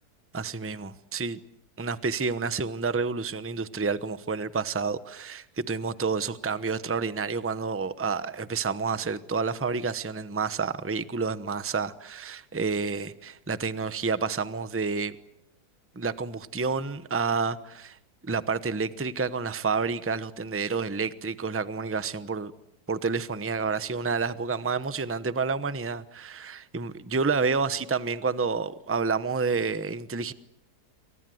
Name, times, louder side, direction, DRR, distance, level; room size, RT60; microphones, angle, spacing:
voice 1, 0.3-1.4 1.8-15.2 15.9-18.0 18.2-22.5 22.9-30.3, right 4 dB, 10° right, 0.8 m, -29 dB
28.5 x 25.5 x 7.9 m
omnidirectional pair, 1.7 m